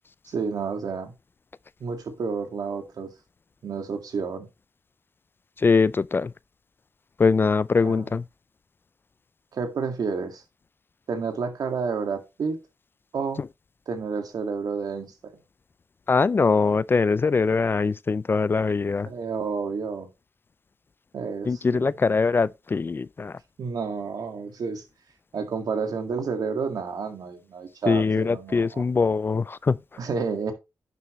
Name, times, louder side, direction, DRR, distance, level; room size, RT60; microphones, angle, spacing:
voice 1, 0.3-1.1 1.8-3.1 3.6-4.5 7.8-8.1 9.5-10.4 11.1-12.6 13.1-13.4 13.9-15.3 19.1-20.1 21.1-21.9 23.6-24.8 25.3-28.8 30.0-30.5, right 5 dB, 75° right, 2.0 m, -30 dB
voice 2, 5.6-6.3 7.2-8.2 16.1-19.1 21.5-23.3 27.9-29.8, left 4 dB, 35° left, 0.3 m, -22 dB
10.5 x 7.1 x 3.1 m
cardioid pair, 95°, 6 cm